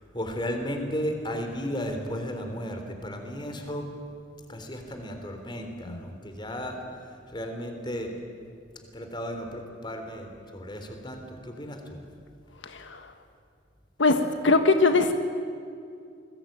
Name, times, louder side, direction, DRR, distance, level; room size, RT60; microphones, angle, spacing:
voice 1, 0.0-3.9 4.5-6.8 7.3-8.1 8.9-12.0, equal, 25° left, 5 dB, 3.6 m, -34 dB
voice 2, 14.0-15.1, left 3 dB, 85° left, 7 dB, 1.6 m, -21 dB
28.0 x 21.0 x 9.0 m, 2.4 s
head